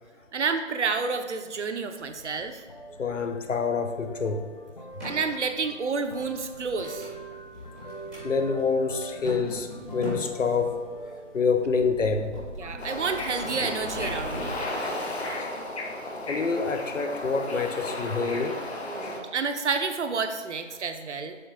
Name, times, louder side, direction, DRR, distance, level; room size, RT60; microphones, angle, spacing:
voice 1, 0.3-2.6 5.0-7.1 11.1-11.2 12.6-14.6 18.9-21.4, right 5 dB, 70° right, 7 dB, 0.7 m, -30 dB
sound 1, 2.0-13.6, right 2 dB, 35° left, 0.6 m, -44 dB
voice 2, 3.0-4.5 8.2-10.8 11.3-12.8 15.2-15.5 16.3-18.6 19.0-19.2, left 4 dB, 85° left, 7 dB, 0.8 m, -27 dB
sound 2, 4.9-5.2 5.8-7.2 7.6-8.3 8.6-8.7 9.0-11.0 11.6-14.6, equal, 5° left, 0.8 m, -39 dB
Bird / Ocean, 12.8-19.2, left 2 dB, 60° left, 1.1 m, -34 dB
6.9 x 3.7 x 3.8 m, 1.5 s
figure-of-eight pair, 155°, 37 cm